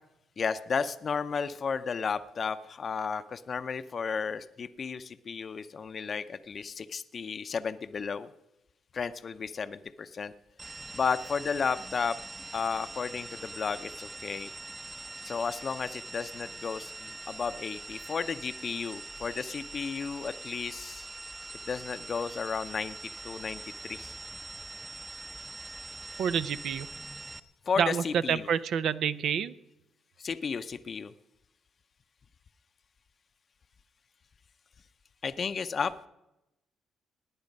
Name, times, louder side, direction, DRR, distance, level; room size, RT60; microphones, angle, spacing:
voice 1, 0.4-8.3 8.9-10.3 10.6-12.2 12.5-14.5 15.2-21.1 21.7-24.1 27.7-28.5 30.2-31.1 35.2-35.9, left 5 dB, 45° left, 10 dB, 0.6 m, -33 dB
sound 1, 10.6-27.4, right 2 dB, 15° right, 0.7 m, -43 dB
voice 2, 26.2-26.9 27.8-29.5, right 8 dB, 70° right, 15 dB, 0.5 m, -28 dB
18.0 x 9.8 x 5.3 m, 0.92 s
cardioid pair, 90°, 0 cm